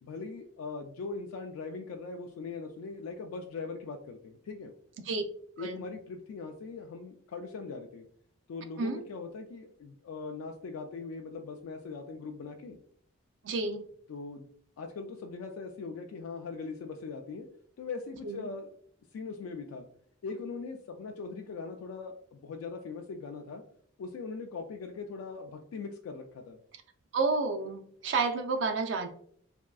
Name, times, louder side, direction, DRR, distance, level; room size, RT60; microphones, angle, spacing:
voice 1, 0.0-4.7 5.6-8.1 8.5-12.8 14.1-14.5 14.8-17.5 17.8-18.7 19.1-19.9 20.2-23.6 24.0-26.6, left 4 dB, 85° left, 4 dB, 0.3 m, -40 dB
voice 2, 13.4-13.8 18.2-18.4 27.1-29.1, right 4 dB, 60° right, 6 dB, 0.4 m, -30 dB
3.5 x 2.3 x 2.3 m, 0.62 s
head